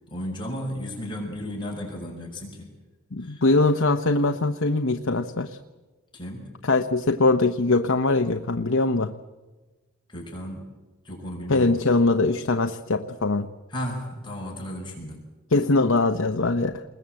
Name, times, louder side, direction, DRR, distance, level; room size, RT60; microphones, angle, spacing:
voice 1, 0.1-2.7 3.2-3.4 6.1-6.5 10.1-10.7 11.0-11.8 13.7-15.2, equal, 25° left, -1 dB, 5.6 m, -34 dB
voice 2, 3.1-5.6 6.6-9.1 11.5-13.5 15.5-16.8, left 3 dB, 65° left, 6 dB, 0.9 m, -22 dB
28.5 x 21.5 x 7.8 m, 1.3 s
head